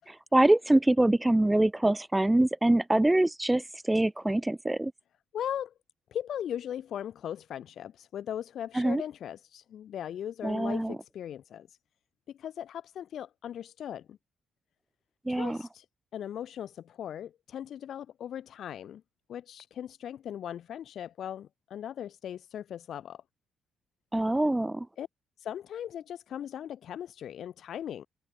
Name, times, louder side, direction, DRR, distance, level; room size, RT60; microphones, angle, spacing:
voice 1, 0.3-3.6 3.9-4.9 8.7-9.0 10.4-10.9 15.3-15.6 24.1-24.9, right 1 dB, 10° right, 1.5 m, -24 dB
voice 2, 5.3-5.7 6.1-11.8 12.4-14.2 15.3-15.9 16.1-19.0 19.3-23.2 25.0-25.1 25.4-28.1, left 10 dB, 65° left, 5.4 m, -38 dB
cardioid pair, 90°, 0 cm